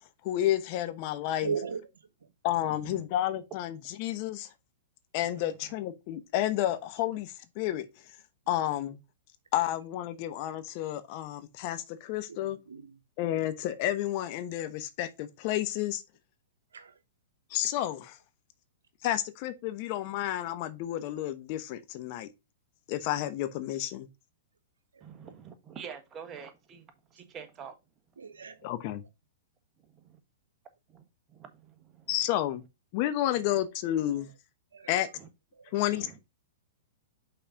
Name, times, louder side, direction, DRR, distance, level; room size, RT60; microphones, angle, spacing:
voice 1, 0.2-1.5 2.4-4.5 5.1-7.9 8.5-9.0 9.5-12.6 13.2-16.0 17.5-18.2 19.0-22.3 22.9-24.1 28.6-29.0 32.1-32.6 32.9-34.3 34.9-35.1 35.7-36.2, left 13 dB, 50° left, 0.9 m, -31 dB
voice 2, 1.4-1.9 12.3-13.0 16.7-16.9 24.9-25.0 28.2-28.7 34.1-34.3 34.7-34.9 35.6-36.0, right 6 dB, 90° right, 1.0 m, -38 dB
voice 3, 2.6-3.0 5.3-5.5 25.0-27.7 31.3-32.1 35.1-35.3 35.9-36.2, right 7 dB, 25° right, 1.5 m, -46 dB
5.7 x 4.2 x 5.0 m
hypercardioid pair, 120°, 0 cm